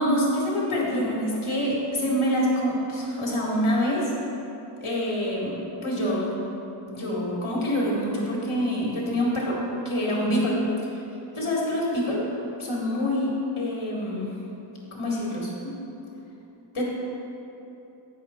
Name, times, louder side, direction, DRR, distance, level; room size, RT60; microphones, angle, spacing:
voice 1, 0.0-4.1 4.8-5.6 5.8-6.3 6.9-9.6 9.9-10.6 10.9-11.0 11.3-12.2 12.6-14.3 14.9-15.7 16.7-16.8, equal, 75° left, -4 dB, 2.0 m, -26 dB
8.3 x 6.3 x 4.3 m, 3.0 s
wide cardioid pair, 45°, 50 cm